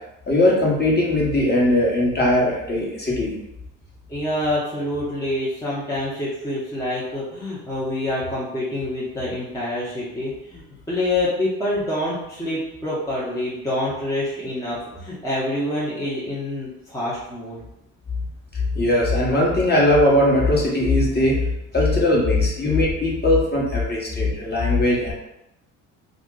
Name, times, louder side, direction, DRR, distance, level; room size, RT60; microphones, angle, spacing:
voice 1, 0.3-3.3 18.7-21.4 21.7-25.1, left 1 dB, 25° left, -4 dB, 1.2 m, -19 dB
voice 2, 4.1-17.6, left 1 dB, 10° left, -8 dB, 0.9 m, -26 dB
2.4 x 2.2 x 3.8 m, 0.87 s
hypercardioid pair, 65°, 40 cm